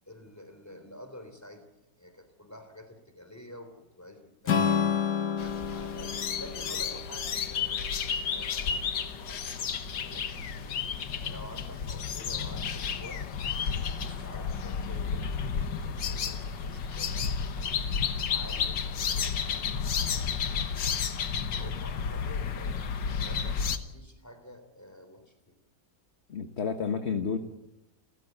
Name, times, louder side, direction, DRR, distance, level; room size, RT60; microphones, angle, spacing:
voice 1, 0.1-1.6 2.0-4.8 5.2-10.8 11.3-13.3 13.8-15.3 16.1-17.3 18.3-21.2 21.5-22.8 23.2-25.6, left 1 dB, 10° left, 8 dB, 3.4 m, -49 dB
Strum, 4.5-8.7, left 7 dB, 65° left, 2.1 m, -31 dB
sound 1, 5.4-23.8, left 6 dB, 85° left, 1.9 m, -32 dB
sound 2, 6.4-19.6, equal, 70° right, 4.5 m, -51 dB
voice 2, 26.3-27.4, left 6 dB, 40° left, 7 dB, 1.4 m, -30 dB
28.5 x 14.5 x 8.1 m, 0.92 s
omnidirectional pair, 1.9 m